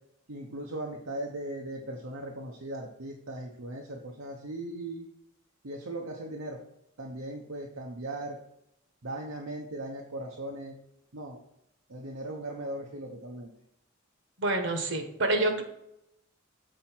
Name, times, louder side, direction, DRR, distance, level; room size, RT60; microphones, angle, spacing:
voice 1, 0.3-5.1 5.6-6.6 7.0-8.4 9.0-10.7 11.1-11.4 11.9-13.5, right 1 dB, 80° right, 0 dB, 0.9 m, -38 dB
voice 2, 14.4-15.6, right 2 dB, 65° right, 5 dB, 1.2 m, -27 dB
7.7 x 4.4 x 4.4 m, 0.80 s
head